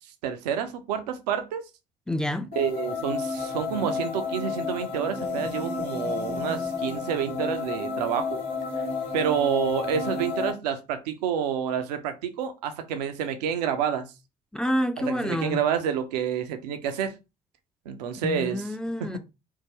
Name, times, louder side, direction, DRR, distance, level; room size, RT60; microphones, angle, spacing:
voice 1, 0.2-1.6 2.6-8.4 9.1-14.1 15.0-17.2 17.9-18.6 19.0-19.1, right 8 dB, 75° right, 0.5 m, -28 dB
voice 2, 2.1-2.5 5.4-5.5 14.5-15.6 18.2-19.2, left 1 dB, 5° left, 0.4 m, -28 dB
sound 1, 2.5-10.5, left 4 dB, 50° left, 1.0 m, -31 dB
3.7 x 2.5 x 2.9 m
figure-of-eight pair, 45°, 21 cm